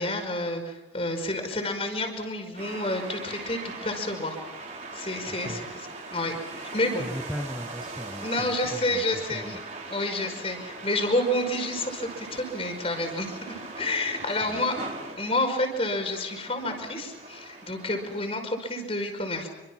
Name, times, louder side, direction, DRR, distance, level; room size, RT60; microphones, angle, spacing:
voice 1, 0.0-4.4 4.9-7.0 8.2-9.6 9.9-14.8 15.2-19.5, left 1 dB, 30° left, 5 dB, 5.3 m, -29 dB
sound 1, 2.6-18.3, right 3 dB, 40° right, 4.5 m, -40 dB
voice 2, 5.3-5.6 7.0-9.6 14.5-14.6, equal, ahead, 2 dB, 1.3 m, -38 dB
27.5 x 25.0 x 6.0 m, 0.99 s
head